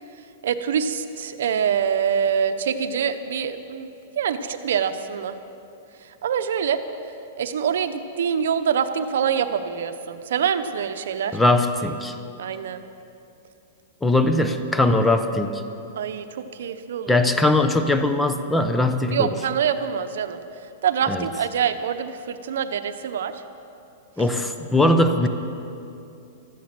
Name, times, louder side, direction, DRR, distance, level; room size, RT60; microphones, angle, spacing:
voice 1, 0.4-5.3 6.2-6.8 7.4-11.4 12.4-12.8 16.0-17.2 19.1-20.4 20.8-23.4, right 7 dB, 75° right, 10 dB, 0.9 m, -25 dB
voice 2, 11.3-12.1 14.0-15.6 17.1-19.3 21.1-21.3 24.2-25.3, left 2 dB, 5° left, 8 dB, 0.7 m, -20 dB
16.0 x 13.5 x 6.1 m, 2.7 s
hypercardioid pair, 150°, 0 cm